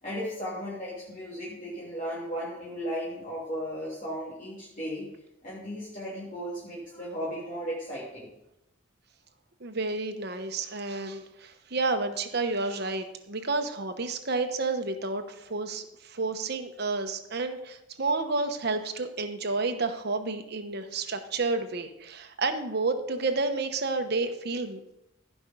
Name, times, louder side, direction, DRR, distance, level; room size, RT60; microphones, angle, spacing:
voice 1, 0.0-5.1 5.4-8.3, equal, 40° left, -8 dB, 3.1 m, -35 dB
voice 2, 9.6-24.8, right 3 dB, 55° right, 7 dB, 1.0 m, -30 dB
15.5 x 5.4 x 5.3 m, 0.86 s
head